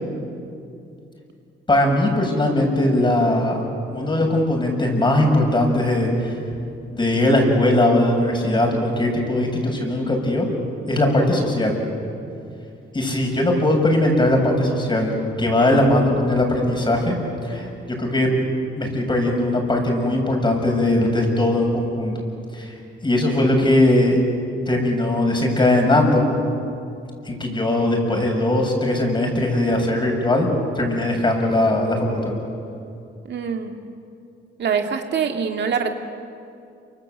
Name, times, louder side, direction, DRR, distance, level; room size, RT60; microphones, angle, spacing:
voice 1, 1.7-3.6 3.9-6.3 6.9-10.5 10.9-11.8 12.9-17.1 17.4-17.7 18.0-18.3 18.7-22.2 22.5-22.7 23.0-24.2 24.7-26.2 27.2-30.5 30.7-32.3, left 1 dB, 25° left, 2 dB, 6.8 m, -19 dB
voice 2, 33.3-33.7 34.6-35.9, right 6 dB, 60° right, 4 dB, 2.0 m, -24 dB
28.5 x 25.0 x 8.0 m, 2.5 s
cardioid pair, 90°, 20 cm